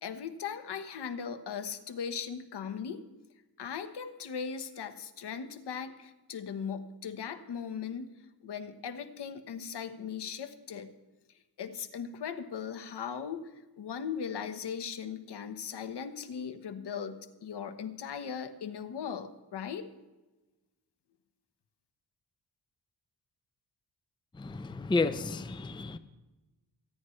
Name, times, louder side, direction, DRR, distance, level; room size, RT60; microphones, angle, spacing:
voice 1, 0.0-3.0 3.6-8.2 8.4-10.9 11.6-13.4 13.8-19.9, left 7 dB, 75° left, 1.2 m, -38 dB
voice 2, 24.4-26.0, left 3 dB, 10° left, 0.5 m, -31 dB
25.5 x 9.8 x 3.2 m
cardioid pair, 90°, 41 cm